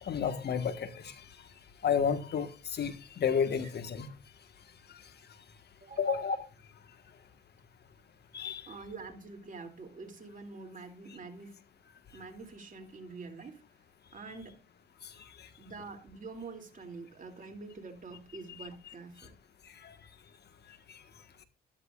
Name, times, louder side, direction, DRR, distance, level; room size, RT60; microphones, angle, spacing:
voice 1, 0.0-1.1 1.8-4.1 6.0-6.4 8.3-8.6, left 7 dB, 55° left, 1.5 m, -31 dB
voice 2, 5.8-6.2 8.7-11.6 12.1-13.6 14.1-14.6 15.6-19.3, right 4 dB, 40° right, 2.7 m, -46 dB
13.0 x 12.5 x 2.4 m
cardioid pair, 90°, 20 cm